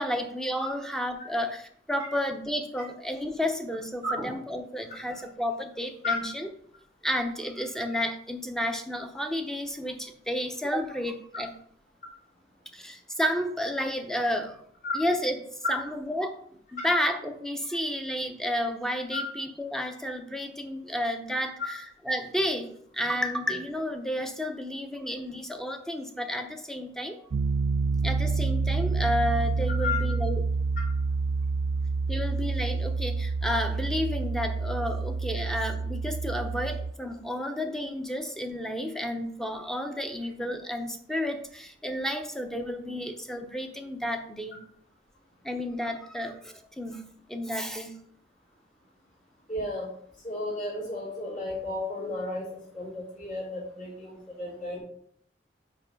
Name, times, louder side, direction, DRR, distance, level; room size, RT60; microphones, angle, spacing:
voice 1, 0.0-6.5 7.0-11.5 12.7-14.7 14.9-15.4 15.7-16.4 16.7-27.2 28.0-30.4 32.1-44.6 45.4-47.0 47.3-48.0, equal, 5° left, 5 dB, 0.7 m, -31 dB
Piano, 27.3-36.9, right 4 dB, 60° right, 0.4 m, -28 dB
voice 2, 49.5-49.9 50.2-54.8, left 2 dB, 45° left, -6 dB, 3.0 m, -33 dB
5.8 x 4.8 x 5.3 m, 0.66 s
head